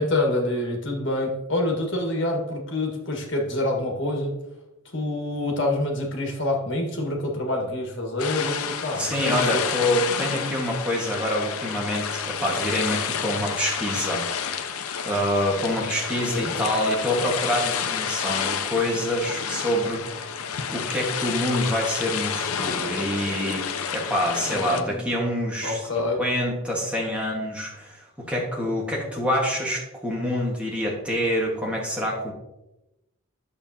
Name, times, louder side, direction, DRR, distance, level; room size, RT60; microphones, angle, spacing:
voice 1, 0.0-4.4 4.9-9.6 16.3-16.6 24.5-25.2 25.6-26.2, left 2 dB, 55° left, 0 dB, 1.6 m, -27 dB
sound 1, 8.2-24.8, left 7 dB, 85° left, 0.6 m, -30 dB
voice 2, 9.0-14.2 15.0-20.3 20.7-25.9 26.2-32.3, equal, 5° right, -3 dB, 1.5 m, -26 dB
8.6 x 6.9 x 2.8 m, 0.95 s
head